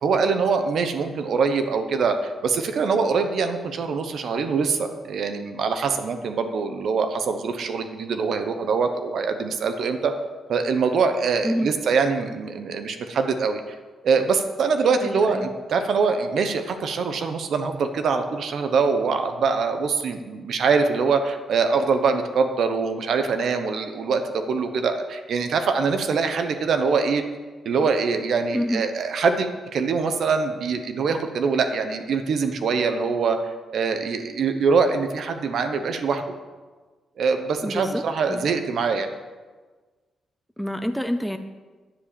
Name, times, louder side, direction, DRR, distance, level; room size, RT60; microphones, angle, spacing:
voice 1, 0.0-10.1 10.5-13.6 14.0-27.2 27.6-33.4 33.7-36.2 37.2-39.1, right 5 dB, 60° right, 7 dB, 1.0 m, -23 dB
voice 2, 15.0-15.5 28.5-28.8 37.6-38.0 38.3-38.5 40.6-41.4, equal, ahead, 7 dB, 0.5 m, -27 dB
10.0 x 7.6 x 8.7 m, 1.3 s
wide cardioid pair, 165°, 0 cm